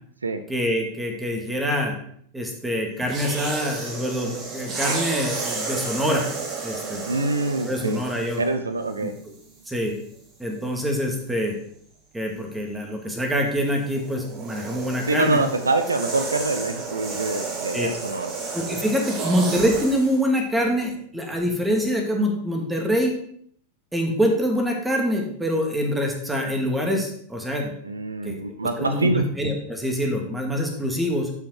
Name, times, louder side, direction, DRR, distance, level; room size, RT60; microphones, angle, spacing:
voice 1, 0.5-1.9 2.3-6.3 6.6-7.0 7.7-8.4 9.0-9.1 9.7-9.9 10.4-11.6 12.1-15.4 17.7-17.9 18.5-23.1 23.9-27.7 28.2-28.4 28.8-31.3, equal, 5° right, 2 dB, 2.2 m, -25 dB
sound 1, 3.0-8.5 9.4-9.6 13.5-20.2, right 4 dB, 35° right, 2.0 m, -32 dB
voice 2, 7.1-8.0 8.4-9.1 15.1-18.3 27.8-29.3, right 3 dB, 75° right, 9 dB, 0.7 m, -25 dB
12.5 x 5.9 x 4.5 m, 0.64 s
figure-of-eight pair, 90°, 0 cm